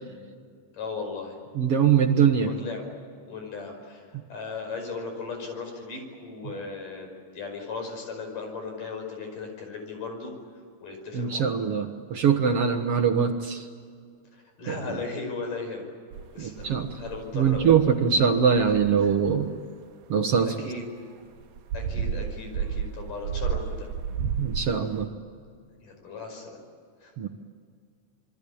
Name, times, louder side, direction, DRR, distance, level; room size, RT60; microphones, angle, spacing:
voice 1, 0.7-1.4 2.4-2.9 3.3-10.3 10.8-11.5 14.3-15.9 16.3-17.8 20.6-20.9 21.7-23.9 25.8-26.6 27.0-27.1, left 4 dB, 75° left, 3 dB, 7.0 m, -37 dB
voice 2, 1.6-2.5 4.1-4.2 11.1-13.7 14.7-14.8 16.4-17.0 17.3-19.5 20.1-20.6 24.4-25.1 27.2-27.3, right 7 dB, 55° right, 5 dB, 1.9 m, -22 dB
sound 1, 16.1-17.9 18.2-18.3 18.5-19.4 21.4-25.1, right 7 dB, 80° right, 2.5 m, -32 dB
27.5 x 23.0 x 8.7 m, 2.2 s
omnidirectional pair, 3.8 m